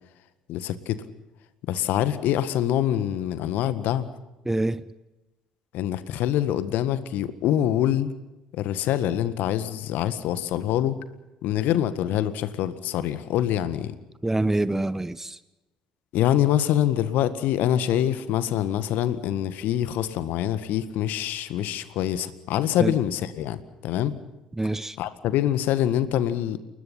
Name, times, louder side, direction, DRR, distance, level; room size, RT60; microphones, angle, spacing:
voice 1, 0.5-1.0 1.6-4.1 5.7-8.1 8.5-11.0 11.4-13.9 16.1-24.2 25.0-26.6, left 11 dB, 55° left, 1.8 m, -25 dB
voice 2, 4.4-4.8 14.2-15.4 22.8-22.9 24.6-25.0, right 2 dB, 10° right, 1.1 m, -25 dB
29.5 x 20.5 x 5.8 m
figure-of-eight pair, 55°, 4 cm